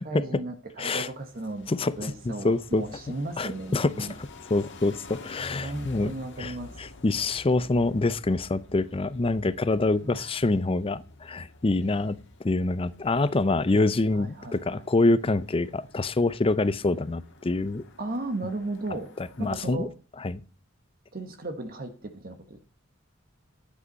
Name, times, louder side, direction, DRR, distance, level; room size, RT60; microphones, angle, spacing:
voice 1, 0.0-1.7 2.0-4.1 5.6-6.8 10.1-10.3 13.7-13.8 14.1-14.9 18.0-19.1 19.4-19.9 21.1-22.6, right 2 dB, 45° right, 1.2 m, -35 dB
voice 2, 0.8-1.1 1.7-2.8 3.4-6.1 6.4-17.8 19.2-19.9 20.2-20.4, left 2 dB, 25° left, 0.5 m, -26 dB
sound 1, 1.1-19.7, left 2 dB, 60° left, 1.6 m, -49 dB
11.5 x 8.4 x 5.3 m
head